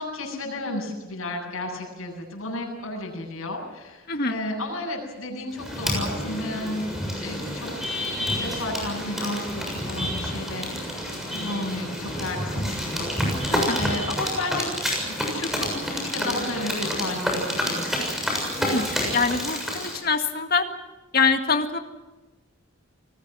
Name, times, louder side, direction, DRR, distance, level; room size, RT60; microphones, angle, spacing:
voice 1, 0.0-6.9 7.2-7.7 8.3-13.4 13.7-14.7 15.1-18.2, left 2 dB, 90° left, -3 dB, 7.5 m, -33 dB
sound 1, 5.5-20.0, equal, ahead, 7.0 m, -29 dB
voice 2, 18.6-20.7 21.1-21.8, left 4 dB, 45° left, 5 dB, 1.9 m, -24 dB
30.0 x 20.0 x 6.3 m, 1.1 s
head